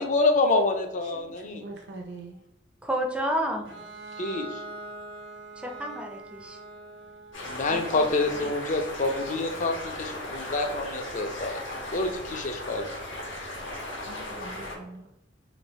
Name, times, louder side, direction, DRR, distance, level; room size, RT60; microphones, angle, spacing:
voice 1, 0.0-1.6 4.2-4.6 7.5-11.6 11.9-12.8, left 2 dB, 40° left, 5 dB, 0.5 m, -27 dB
voice 2, 1.0-2.4 14.1-15.1, right 2 dB, 65° right, 2 dB, 0.6 m, -43 dB
voice 3, 2.8-3.6 5.6-6.6 7.7-8.1 8.4-8.5, equal, 5° right, 3 dB, 0.5 m, -30 dB
Bowed string instrument, 3.6-9.2, right 2 dB, 85° right, 1.2 m, -43 dB
sound 1, 7.3-14.8, left 1 dB, 85° left, 1.3 m, -37 dB
3.2 x 2.6 x 4.1 m, 0.87 s
head